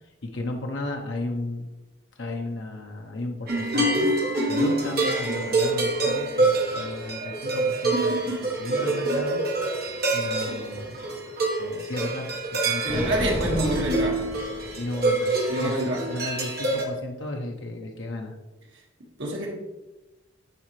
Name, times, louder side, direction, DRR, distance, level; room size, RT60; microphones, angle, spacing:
voice 1, 0.0-1.7 2.1-4.1 4.5-9.4 10.1-11.0 11.6-13.0 14.8-18.4, left 2 dB, 65° left, 1 dB, 0.8 m, -34 dB
sound 1, 3.5-16.8, right 2 dB, 50° right, 1.4 m, -26 dB
voice 2, 12.8-14.3 15.5-16.0 19.2-19.5, right 1 dB, 65° right, -2 dB, 1.8 m, -27 dB
sound 2, 12.9-15.1, left 1 dB, 30° left, 0.8 m, -32 dB
9.8 x 4.2 x 3.2 m, 1.1 s
head